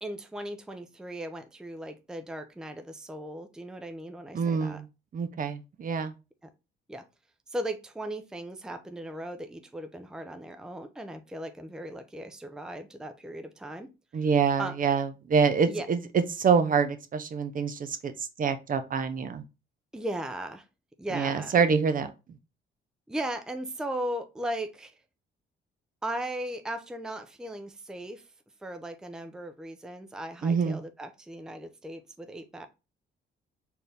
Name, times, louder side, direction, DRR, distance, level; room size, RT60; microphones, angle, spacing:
voice 1, 0.0-4.8 6.4-6.5 6.9-7.0 7.5-13.9 14.6-14.8 15.7-15.9 19.9-20.6 21.0-21.6 23.1-24.9 26.0-28.2 28.6-32.7, right 1 dB, 5° right, 7 dB, 0.5 m, -37 dB
voice 2, 4.3-4.8 5.1-6.1 14.1-19.4 21.1-22.1 30.4-30.8, right 6 dB, 45° right, 9 dB, 0.6 m, -26 dB
4.4 x 2.6 x 3.4 m, 0.27 s
cardioid pair, 90°, 20 cm